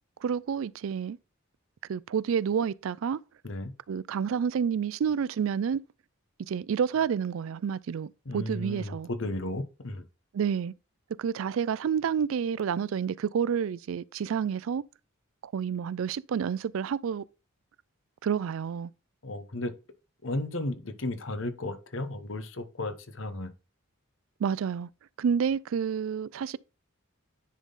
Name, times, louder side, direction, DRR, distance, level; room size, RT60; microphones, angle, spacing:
voice 1, 0.2-1.2 1.9-3.2 3.9-5.8 6.5-9.1 10.3-10.7 11.2-14.8 15.4-17.2 18.2-18.9 24.4-24.9 25.2-26.6, right 7 dB, 65° right, 0.3 m, -29 dB
voice 2, 8.3-10.0 19.2-19.7 20.2-23.5, left 1 dB, 60° left, 1.0 m, -34 dB
10.0 x 3.7 x 4.0 m
head